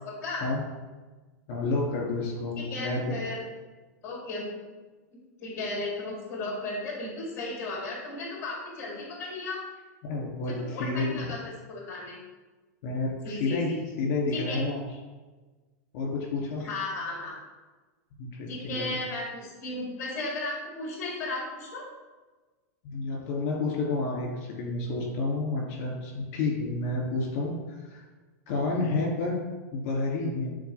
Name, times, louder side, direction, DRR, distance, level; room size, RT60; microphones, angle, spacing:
voice 1, 0.0-0.4 2.6-3.4 4.0-4.8 5.4-9.6 10.5-12.2 13.2-13.8 14.3-14.6 16.6-17.4 18.5-21.8, left 2 dB, 25° left, -3 dB, 2.3 m, -35 dB
voice 2, 1.5-3.1 10.0-11.2 12.8-14.8 15.9-16.6 18.2-18.9 22.8-28.0 28.5-29.4 29.7-30.5, left 3 dB, 45° left, -2 dB, 2.7 m, -30 dB
12.0 x 4.2 x 3.5 m, 1.3 s
supercardioid pair, 155°, 9 cm